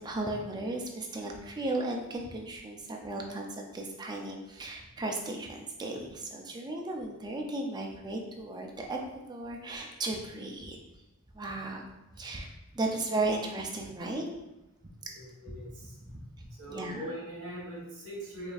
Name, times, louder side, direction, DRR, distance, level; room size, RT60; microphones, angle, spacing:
voice 1, 0.0-9.0 9.3-10.8 11.3-11.9 12.2-12.5 12.7-14.2 16.0-17.1, right 2 dB, 20° right, 1 dB, 0.4 m, -35 dB
voice 2, 15.1-15.9 16.6-18.5, right 1 dB, 60° right, -5 dB, 1.4 m, -41 dB
4.9 x 2.6 x 2.3 m, 0.96 s
head